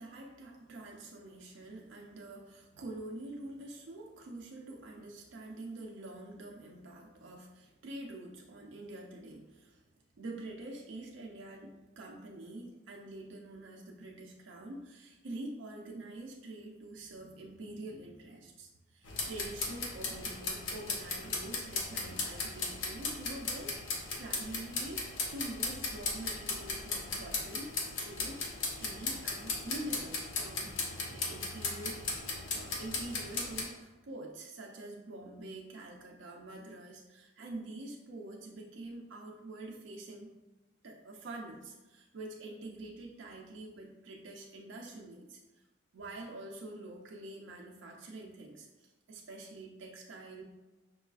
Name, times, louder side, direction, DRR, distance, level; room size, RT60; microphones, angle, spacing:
voice 1, 0.0-9.8 10.2-27.7 28.0-28.5 28.8-32.0 32.5-40.3 40.8-45.6 45.9-50.4, right 2 dB, 85° right, 0 dB, 0.5 m, -46 dB
sound 1, 19.0-33.6, left 3 dB, 90° left, 0.7 m, -37 dB
5.4 x 2.3 x 2.3 m, 1.1 s
head